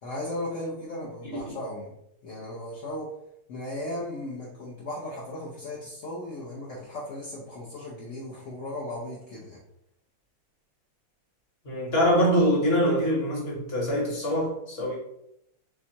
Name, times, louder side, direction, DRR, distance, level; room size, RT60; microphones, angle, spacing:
voice 1, 0.0-1.9 2.2-3.1 3.5-9.6, left 1 dB, 55° left, -5 dB, 0.9 m, -36 dB
voice 2, 11.6-15.0, equal, 35° left, -2 dB, 1.3 m, -24 dB
4.4 x 3.4 x 2.8 m, 0.78 s
omnidirectional pair, 2.1 m